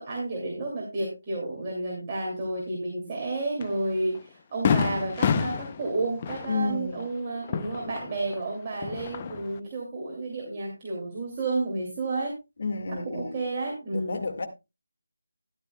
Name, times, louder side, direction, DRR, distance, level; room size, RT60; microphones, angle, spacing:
voice 1, 0.0-12.4 12.9-14.3, right 2 dB, 20° right, 2.5 m, -31 dB
Fireworks, 3.6-3.7 4.1-4.2 4.6-8.4 8.7-9.6, left 6 dB, 20° left, 0.6 m, -28 dB
voice 2, 6.5-7.0 12.6-13.4 13.9-14.5, left 4 dB, 45° left, 1.8 m, -31 dB
13.5 x 11.0 x 2.2 m
figure-of-eight pair, 175°, 0 cm